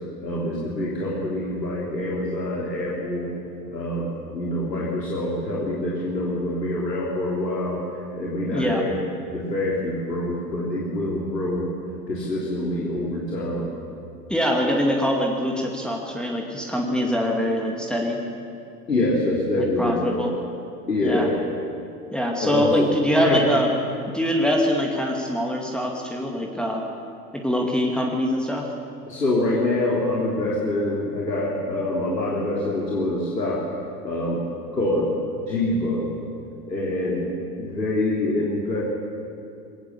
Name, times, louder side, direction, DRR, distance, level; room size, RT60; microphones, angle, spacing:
voice 1, 0.2-3.3 3.7-7.8 8.1-8.9 9.3-11.6 12.1-13.7 18.9-20.3 20.9-21.3 22.4-22.9 23.2-23.4 29.1-33.6 34.0-34.4 34.7-35.1 35.5-36.1 36.7-37.3 37.6-38.8, left 1 dB, 85° left, -5 dB, 3.5 m, -25 dB
voice 2, 8.5-8.8 14.3-18.2 19.5-20.3 21.0-21.3 22.1-23.7 24.1-26.8 27.3-28.7, equal, ahead, -1 dB, 2.2 m, -23 dB
22.5 x 18.0 x 6.9 m, 2.5 s
figure-of-eight pair, 85°, 48 cm